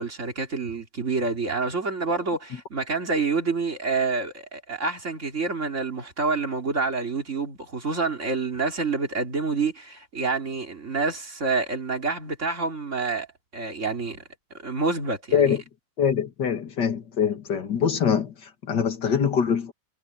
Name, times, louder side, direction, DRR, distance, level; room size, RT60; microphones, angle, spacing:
voice 1, 0.0-13.3 13.5-14.2 14.6-15.6, right 4 dB, 45° right, 3.3 m, -27 dB
voice 2, 16.0-19.7, left 7 dB, 80° left, 2.6 m, -24 dB
omnidirectional pair, 1.8 m